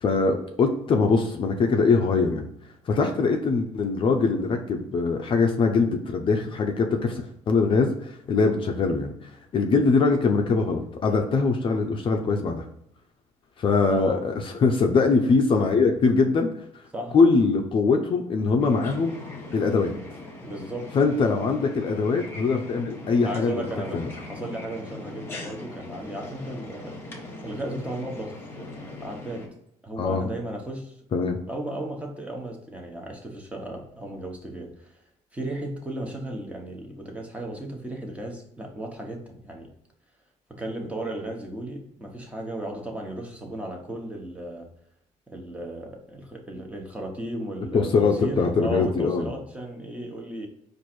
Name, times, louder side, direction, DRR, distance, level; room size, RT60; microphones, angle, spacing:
voice 1, 0.0-2.5 2.9-9.1 9.5-12.6 13.6-16.5 17.1-19.1 19.5-19.9 20.9-23.7 23.9-24.1 30.0-30.3 31.1-31.4 47.7-49.3, left 4 dB, 40° left, 4 dB, 0.5 m, -22 dB
voice 2, 13.8-14.2 16.9-17.2 20.4-21.0 23.2-27.2 27.4-29.5 29.8-31.0 31.5-34.9 35.3-39.7 40.5-44.7 45.3-50.5, right 1 dB, 10° right, 0 dB, 1.0 m, -35 dB
sound 1, 18.6-29.5, left 2 dB, 15° left, 1.2 m, -40 dB
4.6 x 2.6 x 4.3 m, 0.76 s
cardioid pair, 125°, 13 cm